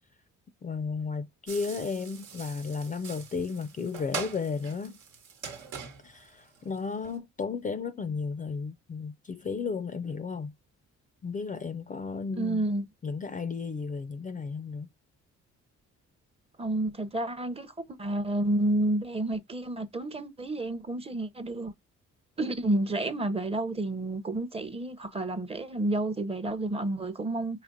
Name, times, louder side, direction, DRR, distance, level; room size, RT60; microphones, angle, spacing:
voice 1, 0.6-5.0 6.0-10.5 11.2-12.7 13.0-14.9, left 5 dB, 25° left, 0.4 m, -34 dB
sound 1, 1.5-7.2, right 6 dB, 85° right, 1.1 m, -42 dB
voice 2, 12.4-12.9 16.6-17.7 18.0-21.7 22.4-27.6, right 1 dB, 20° right, 0.6 m, -30 dB
4.9 x 2.9 x 2.5 m
cardioid pair, 90°, 30 cm